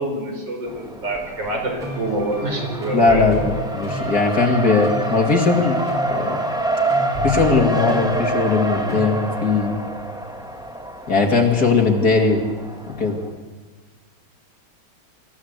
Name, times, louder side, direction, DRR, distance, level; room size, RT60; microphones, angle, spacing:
voice 1, 0.0-3.2, right 1 dB, 60° right, 2 dB, 4.8 m, -26 dB
Race car auto racing, 0.7-13.3, right 1 dB, ahead, 1.5 m, -27 dB
sound 1, 1.1-9.5, left 1 dB, 25° right, 4.4 m, -32 dB
voice 2, 2.9-5.8 6.1-6.4 7.2-9.8 11.1-12.5 13.0-13.2, left 4 dB, 45° left, 2 dB, 2.7 m, -19 dB
26.0 x 15.0 x 8.1 m, 1.4 s
omnidirectional pair, 2.3 m